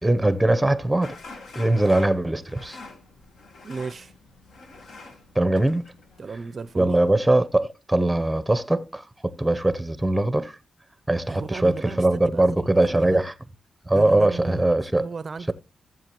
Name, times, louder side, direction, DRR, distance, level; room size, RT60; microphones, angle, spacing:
voice 1, 0.0-1.2 1.6-2.8 5.4-5.8 6.8-10.5 11.1-13.3 13.9-15.1, right 1 dB, 5° right, 0.7 m, -21 dB
sound 1, 1.0-7.3, left 3 dB, 75° left, 1.4 m, -46 dB
voice 2, 3.6-4.1 6.2-7.0 11.3-13.2 13.9-14.6 15.0-15.5, right 4 dB, 45° right, 0.4 m, -35 dB
14.0 x 7.5 x 3.0 m
cardioid pair, 105°, 0 cm